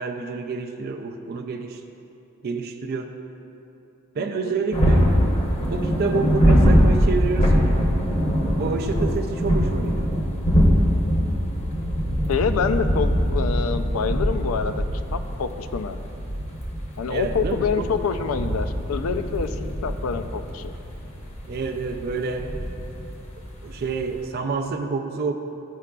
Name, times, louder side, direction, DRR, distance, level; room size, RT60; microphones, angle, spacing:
voice 1, 0.0-1.8 2.4-3.1 4.1-5.0 5.7-7.9 8.6-10.1 17.1-17.9 21.5-22.5 23.6-25.3, right 4 dB, 45° right, 3 dB, 0.4 m, -28 dB
voice 2, 4.2-4.5 12.3-14.8 15.1-16.0 17.0-20.7, left 5 dB, 75° left, 9 dB, 0.4 m, -27 dB
sound 1, 4.7-24.3, equal, 30° left, 0.8 m, -23 dB
12.0 x 4.8 x 2.3 m, 2.8 s
head